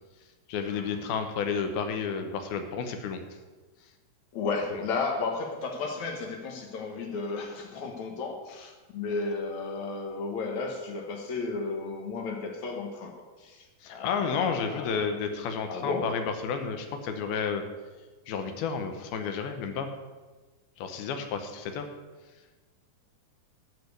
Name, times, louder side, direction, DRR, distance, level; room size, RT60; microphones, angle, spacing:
voice 1, 0.5-3.2 13.8-17.6 18.3-19.9 20.8-21.9, left 6 dB, 85° left, 6 dB, 2.9 m, -31 dB
voice 2, 4.3-13.1 13.4-15.0 15.7-16.1, left 4 dB, 65° left, 3 dB, 2.1 m, -33 dB
12.0 x 5.1 x 8.0 m, 1.3 s
omnidirectional pair, 4.2 m